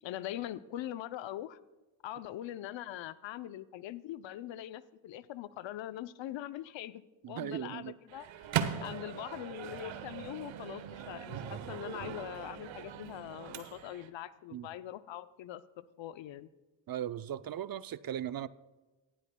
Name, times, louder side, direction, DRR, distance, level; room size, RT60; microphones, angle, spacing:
voice 1, 0.0-1.6 2.0-8.3 8.8-16.5, left 13 dB, 70° left, 0.7 m, -42 dB
voice 2, 7.2-7.9 14.5-14.7 16.9-18.5, right 10 dB, 50° right, 0.6 m, -38 dB
Microwave oven, 8.1-14.1, right 9 dB, 75° right, 1.0 m, -39 dB
17.5 x 12.5 x 2.2 m
supercardioid pair, 55°, 47 cm